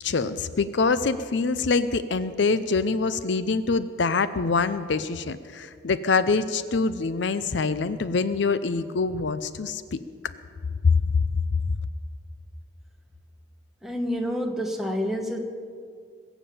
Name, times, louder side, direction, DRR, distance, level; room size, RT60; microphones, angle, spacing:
voice 1, 0.0-10.0 10.8-11.2 11.5-11.7, left 4 dB, 65° left, 13 dB, 0.5 m, -24 dB
voice 2, 13.8-15.4, equal, ahead, 2 dB, 1.3 m, -28 dB
21.0 x 7.2 x 8.6 m, 2.2 s
head